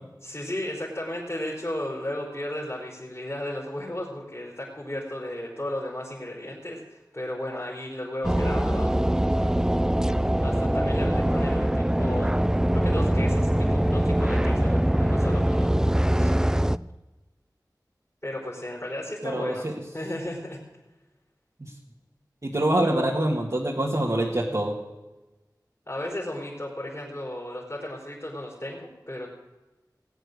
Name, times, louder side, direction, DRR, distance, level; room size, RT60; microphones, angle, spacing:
voice 1, 0.2-9.1 10.4-12.4 12.7-15.7 16.2-16.3 18.2-20.6 25.9-29.3, left 1 dB, 35° left, -5 dB, 4.0 m, -34 dB
sound 1, 8.2-16.8, right 1 dB, 10° right, 0.4 m, -23 dB
voice 2, 19.2-19.7 21.6-21.7 22.4-24.7, right 1 dB, 55° right, -4 dB, 2.0 m, -25 dB
18.0 x 9.2 x 6.6 m, 1.1 s
wide cardioid pair, 45°, 7 cm